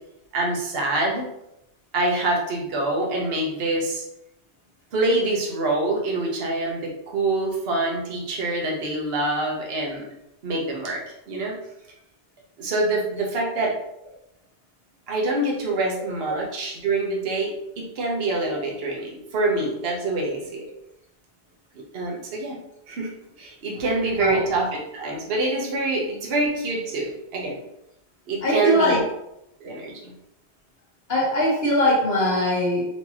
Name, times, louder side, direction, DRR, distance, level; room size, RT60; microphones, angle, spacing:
voice 1, 0.3-1.2 1.9-4.0 4.9-10.1 10.4-11.0 11.3-11.6 12.6-13.7 15.1-20.7 21.7-22.6 22.9-23.1 23.4-24.7 24.9-27.6 28.3-29.0 29.6-30.1, right 2 dB, 60° right, -1 dB, 1.1 m, -25 dB
voice 2, 28.4-29.0 31.1-32.8, equal, 60° left, -4 dB, 1.5 m, -21 dB
4.5 x 2.8 x 2.8 m, 0.84 s
omnidirectional pair, 1.2 m